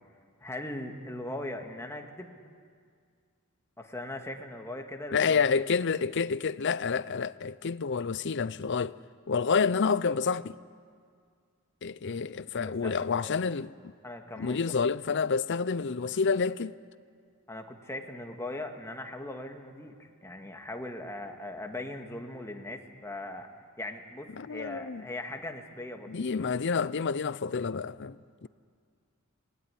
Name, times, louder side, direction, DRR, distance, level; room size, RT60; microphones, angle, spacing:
voice 1, 0.4-2.4 3.8-5.5 12.0-12.2 12.5-13.4 14.0-14.9 17.5-23.5 23.8-26.5, left 1 dB, 15° left, 1.9 m, -40 dB
voice 2, 5.1-9.0 9.3-10.6 11.8-13.7 14.4-16.8 24.4-25.0 26.1-28.2 28.4-28.5, left 5 dB, 55° left, 0.6 m, -28 dB
27.5 x 20.5 x 9.9 m
head